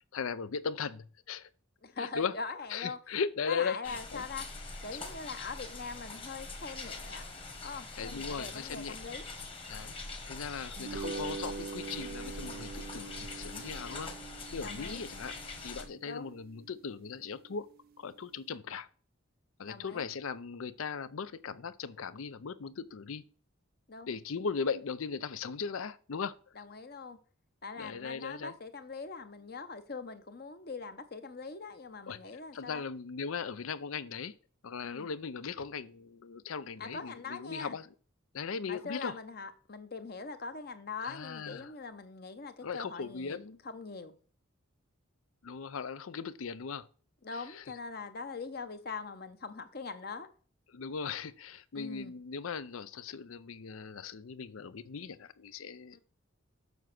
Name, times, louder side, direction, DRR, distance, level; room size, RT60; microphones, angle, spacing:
voice 1, 0.1-1.5 2.0-2.3 2.7-4.2 4.9-5.0 8.0-9.0 9.7-10.0 10.3-14.1 14.5-15.4 15.6-17.7 18.0-18.9 19.6-23.2 24.1-26.3 27.8-28.5 32.1-34.3 34.6-37.9 38.3-39.2 41.0-41.7 42.6-43.6 45.4-46.9 47.3-47.6 50.7-56.0, left 5 dB, 80° left, 0.5 m, -38 dB
voice 2, 1.8-3.0 3.5-4.4 4.8-7.2 7.6-9.2 14.6-15.0 16.0-16.4 19.7-20.1 23.9-24.1 26.6-27.2 27.6-32.8 34.8-35.1 36.8-37.8 38.7-43.4 43.6-44.1 47.2-50.3 51.7-52.1 55.9-56.0, left 4 dB, 45° left, 0.8 m, -42 dB
sound 1, 3.8-15.8, left 3 dB, 25° left, 1.3 m, -43 dB
sound 2, 10.8-17.3, right 5 dB, 45° right, 0.3 m, -44 dB
7.1 x 6.1 x 5.9 m
head